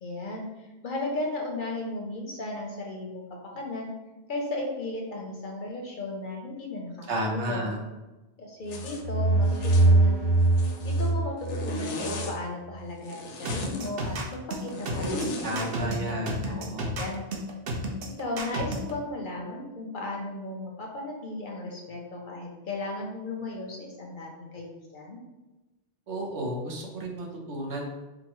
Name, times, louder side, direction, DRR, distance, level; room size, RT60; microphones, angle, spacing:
voice 1, 0.0-3.9 4.3-7.7 8.4-10.2 10.8-16.7 17.0-17.3 18.2-25.2, left 2 dB, 55° left, 0 dB, 0.6 m, -35 dB
voice 2, 7.1-7.8 15.4-17.0 26.1-27.9, right 1 dB, 80° right, -1 dB, 1.1 m, -32 dB
Zipper (clothing), 8.7-9.0 9.5-9.9 10.4-11.1 11.4-12.4 13.0-13.9 14.7-15.7, left 2 dB, 85° left, 0.9 m, -36 dB
sound 1, 8.7-12.3, right 2 dB, 25° right, 0.8 m, -23 dB
sound 2, 13.5-18.9, right 1 dB, 60° right, 0.8 m, -32 dB
4.9 x 2.0 x 2.9 m, 1.1 s
omnidirectional pair, 1.2 m